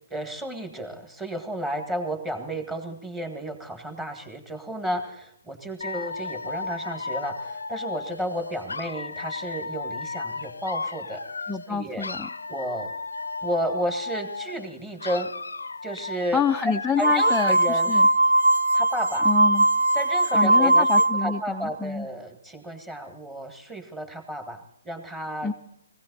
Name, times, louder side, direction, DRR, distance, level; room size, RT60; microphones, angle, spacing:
voice 1, 0.1-11.2 11.7-12.1 12.5-12.9 13.4-15.3 15.8-16.4 16.9-17.9 18.7-19.3 19.9-20.9 21.2-25.5, right 1 dB, 10° right, 5 dB, 1.8 m, -32 dB
Dog / Alarm, 5.8-11.7 12.0-14.7 15.0-17.7, left 4 dB, 90° left, 0.6 m, -35 dB
voice 2, 11.5-12.3 16.3-18.1 19.2-19.7 20.3-22.1 25.4-25.5, left 5 dB, 5° left, 3 dB, 0.5 m, -27 dB
sound 1, 17.0-21.4, right 1 dB, 80° right, 0.7 m, -20 dB
18.5 x 16.5 x 4.1 m, 0.73 s
hypercardioid pair, 145°, 0 cm